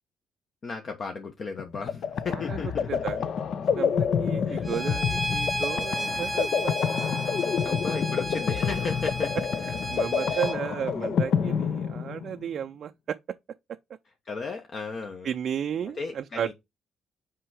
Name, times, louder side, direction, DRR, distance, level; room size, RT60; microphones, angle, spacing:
voice 1, 0.6-3.0 4.5-4.7 7.6-9.4 10.2-10.4 10.9-11.1 14.2-15.3 16.0-16.5, left 4 dB, 50° left, 1.1 m, -35 dB
sound 1, 1.6-12.4, left 7 dB, 65° left, 0.6 m, -28 dB
voice 2, 2.3-3.2 3.8-6.8 9.7-13.2 15.2-16.5, right 8 dB, 60° right, 0.4 m, -33 dB
Bowed string instrument, 4.6-10.6, equal, ahead, 1.0 m, -33 dB
5.8 x 4.6 x 4.8 m
cardioid pair, 90°, 0 cm